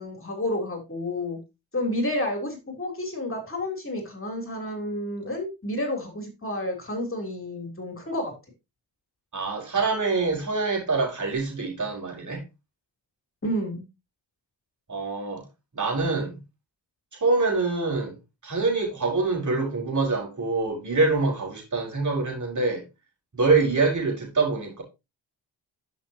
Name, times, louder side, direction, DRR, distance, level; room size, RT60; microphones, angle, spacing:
voice 1, 0.0-1.4 1.7-8.3 13.4-13.8, left 1 dB, 30° left, 3.5 m, -30 dB
voice 2, 9.3-12.4 14.9-15.4 15.7-16.4 17.2-18.1 18.4-22.8 23.3-24.8, right 3 dB, 40° right, 4.7 m, -25 dB
11.0 x 6.1 x 2.9 m
supercardioid pair, 55°, 44 cm